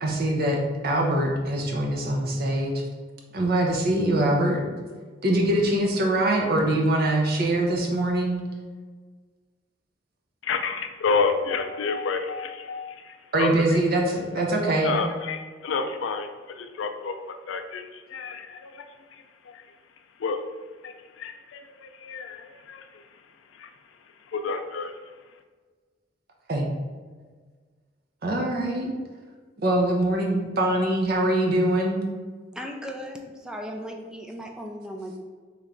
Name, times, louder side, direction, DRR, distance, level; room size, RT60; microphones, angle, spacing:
voice 1, 0.0-2.8 3.3-4.6 5.2-8.4 13.3-15.0 26.5-26.7 28.2-28.9 29.6-32.0, right 1 dB, 55° right, 1 dB, 0.7 m, -23 dB
voice 2, 10.4-13.8 14.8-16.3 16.6-17.2 17.5-18.9 19.1-19.6 20.2-20.4 20.8-23.2 23.5-23.7 24.2-25.0, left 4 dB, 80° left, 6 dB, 0.4 m, -30 dB
voice 3, 32.5-35.2, equal, 5° right, 2 dB, 0.3 m, -37 dB
3.3 x 3.0 x 3.7 m, 1.5 s
head